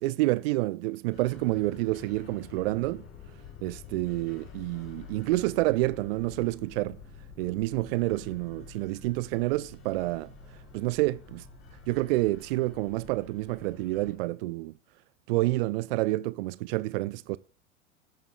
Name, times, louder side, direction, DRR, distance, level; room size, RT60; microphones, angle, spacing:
voice 1, 0.0-3.0 3.6-7.0 7.4-11.4 11.9-14.7 15.3-17.4, right 19 dB, 50° right, 0.4 m, -28 dB
sound 1, 1.1-14.1, left 5 dB, 30° left, 4.6 m, -48 dB
17.5 x 8.9 x 2.4 m
figure-of-eight pair, 85°, 40 cm